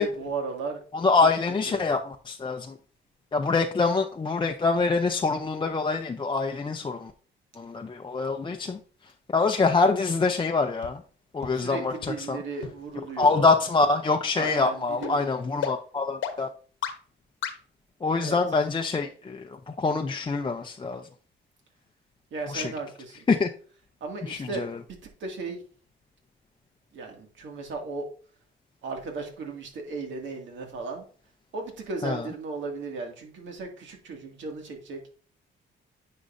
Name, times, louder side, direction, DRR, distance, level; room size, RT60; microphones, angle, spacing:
voice 1, 0.0-0.8 1.2-1.3 1.7-1.9 11.5-13.5 14.3-15.2 18.1-18.4 22.3-23.3 24.0-24.8 25.2-25.6 26.9-28.1 28.8-31.0 31.5-35.0, right 4 dB, 70° right, 2 dB, 2.2 m, -35 dB
voice 2, 0.9-2.7 3.3-7.1 7.6-8.8 9.3-11.0 11.3-12.4 13.2-16.5 18.0-21.1 22.5-22.7 23.3-23.5 24.3-24.8 32.0-32.3, left 4 dB, 25° left, 3 dB, 0.6 m, -25 dB
sound 1, 10.8-10.9 11.4-11.5 12.0-12.1 12.6-12.7 13.2-13.3 13.8-13.9 14.4-14.5 15.0-15.1 15.6-15.7 16.2-16.3 16.8-16.9 17.4-17.5, left 8 dB, 75° left, 1.1 m, -32 dB
9.6 x 5.4 x 2.6 m, 0.42 s
cardioid pair, 90°, 20 cm